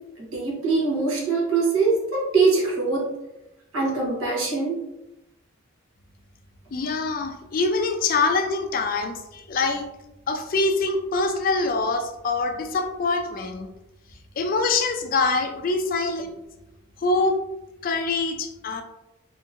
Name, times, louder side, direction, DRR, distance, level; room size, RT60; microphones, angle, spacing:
voice 1, 0.2-3.1 3.7-4.8, right 4 dB, 75° right, -4 dB, 1.0 m, -23 dB
voice 2, 6.7-9.9 10.3-13.7 14.4-16.3 17.0-17.4 17.8-18.8, left 3 dB, 40° left, 5 dB, 0.3 m, -24 dB
2.8 x 2.7 x 2.5 m, 0.92 s
head